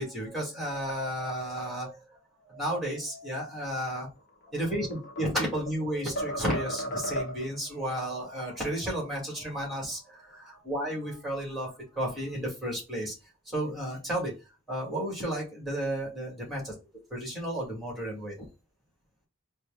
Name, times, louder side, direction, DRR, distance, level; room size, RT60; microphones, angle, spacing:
voice 1, 0.0-2.0 2.5-4.1 4.5-13.1 13.5-14.3 14.7-16.7 17.1-18.5, right 1 dB, ahead, -2 dB, 1.9 m, -33 dB
sound 1, 4.4-5.8 6.2-7.6, equal, 55° left, 1.0 m, -35 dB
4.3 x 2.2 x 3.6 m, 0.29 s
head